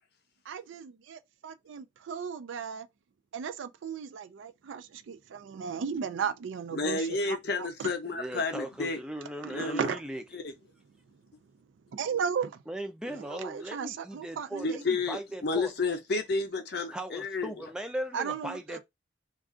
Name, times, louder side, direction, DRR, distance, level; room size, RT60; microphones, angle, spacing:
voice 1, 0.5-2.9 3.3-7.9 9.4-10.0 11.9-12.6 13.2-14.8 18.1-18.8, right 6 dB, 75° right, 0.4 m, -35 dB
voice 2, 6.7-9.0 9.5-9.9 10.3-10.5 13.1-13.2 14.6-17.5, left 3 dB, 55° left, 0.6 m, -31 dB
voice 3, 8.0-10.2 12.7-15.7 16.9-18.8, right 1 dB, 5° right, 0.4 m, -38 dB
2.4 x 2.3 x 3.6 m
head